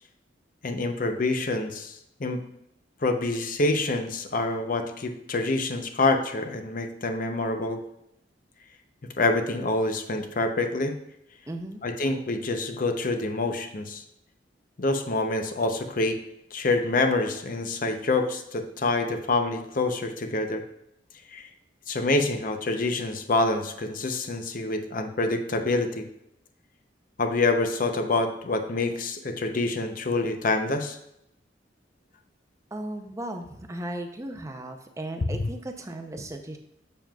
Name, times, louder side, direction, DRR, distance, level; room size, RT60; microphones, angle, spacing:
voice 1, 0.6-2.4 3.0-7.8 9.2-11.0 11.8-14.0 14.8-16.2 16.5-20.6 21.3-21.5 21.9-26.1 27.2-31.0 35.3-35.5, left 2 dB, 45° left, 6 dB, 0.6 m, -26 dB
voice 2, 11.5-11.8 32.7-36.6, right 1 dB, 15° right, 5 dB, 0.5 m, -36 dB
7.3 x 7.0 x 2.3 m, 0.80 s
head